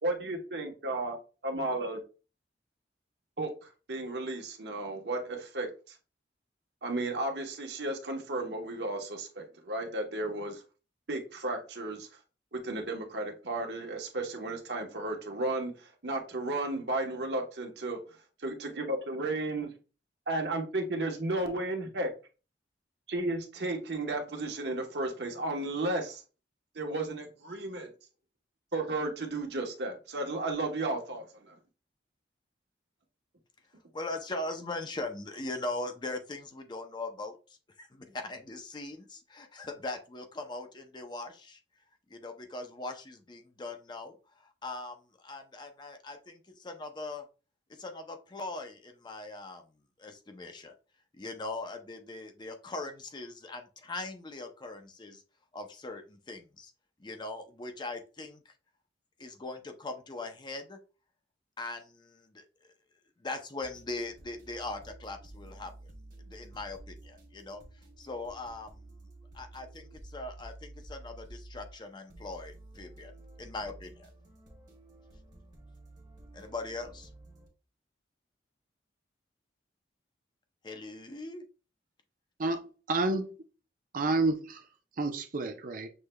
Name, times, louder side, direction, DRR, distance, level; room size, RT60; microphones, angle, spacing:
voice 1, 0.0-1.2 1.4-2.0 3.4-5.7 6.8-10.6 11.1-12.1 12.5-18.0 18.4-19.7 20.3-22.1 23.1-26.2 26.7-27.9 28.7-31.5, right 2 dB, 70° right, 1.0 m, -33 dB
voice 2, 33.9-37.4 37.8-41.6 42.1-47.2 47.7-49.6 50.0-50.7 51.1-55.2 55.5-56.7 57.0-58.5 59.2-60.8 61.6-62.5 63.2-65.9 66.2-67.6 68.0-69.1 69.3-73.1 73.4-74.1 76.3-77.1 80.6-81.4, left 2 dB, 25° left, 0.5 m, -40 dB
sound 1, 63.6-77.5, right 2 dB, 25° right, 1.1 m, -51 dB
voice 3, 82.4-83.3 83.9-84.6 85.0-85.9, right 2 dB, 50° right, 0.6 m, -29 dB
6.3 x 3.2 x 2.2 m
head